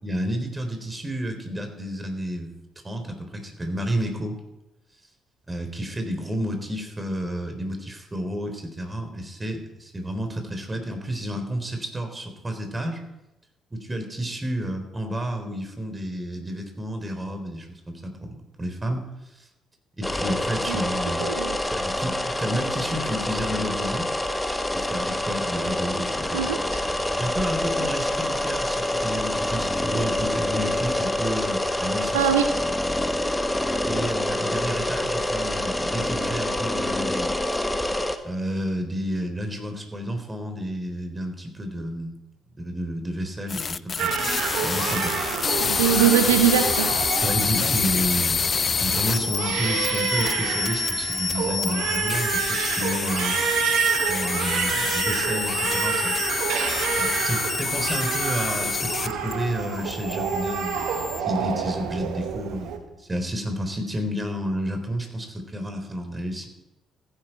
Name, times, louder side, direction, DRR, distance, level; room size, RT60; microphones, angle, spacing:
voice 1, 0.0-2.5 2.8-4.4 5.5-13.0 13.7-19.0 19.3-19.5 20.0-21.3 21.7-24.1 24.7-26.5 27.2-32.3 33.9-37.4 38.2-42.1 42.6-44.1 44.6-45.1 47.2-48.5 48.8-53.4 54.1-56.2 57.0-66.5, equal, 25° right, 5 dB, 3.7 m, -31 dB
sound 1, 20.0-38.2, left 1 dB, 10° left, 1.4 m, -26 dB
voice 2, 21.2-21.6 26.3-26.6 32.1-32.5 45.6-46.9, right 9 dB, 85° right, 7 dB, 0.7 m, -21 dB
sound 2, 43.5-59.3 59.6-61.2, left 5 dB, 40° left, 0.4 m, -27 dB
Crying sobbing, 44.0-62.8, right 7 dB, 70° right, 1.4 m, -28 dB
14.5 x 10.5 x 4.5 m, 0.95 s
hypercardioid pair, 45°, 0 cm